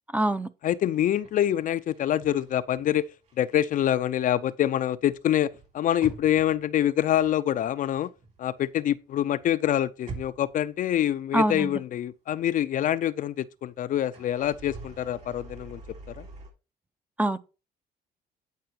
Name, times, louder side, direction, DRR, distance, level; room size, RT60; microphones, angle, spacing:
voice 1, 0.1-0.5 11.3-11.7 17.2-17.4, right 1 dB, 10° right, 0.6 m, -24 dB
voice 2, 0.6-3.1 3.4-8.1 8.4-15.8 16.2-16.3, left 11 dB, 50° left, 0.5 m, -26 dB
sound 1, 0.9-3.6 3.8-9.0 9.3-11.4 11.7-11.8 14.0-16.5, right 3 dB, 45° right, 3.3 m, -46 dB
9.4 x 4.8 x 4.4 m
cardioid pair, 110°, 17 cm